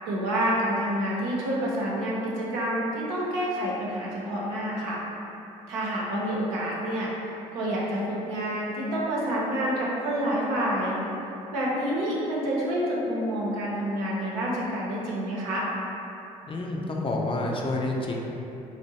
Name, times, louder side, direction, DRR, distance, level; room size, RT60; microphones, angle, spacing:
voice 1, 0.0-5.0 5.7-7.1 7.5-11.0 11.5-15.7, equal, 75° right, -5 dB, 0.7 m, -28 dB
voice 2, 16.4-18.2, left 2 dB, 30° left, -1 dB, 0.5 m, -28 dB
2.7 x 2.1 x 4.0 m, 3.0 s
hypercardioid pair, 50°, 18 cm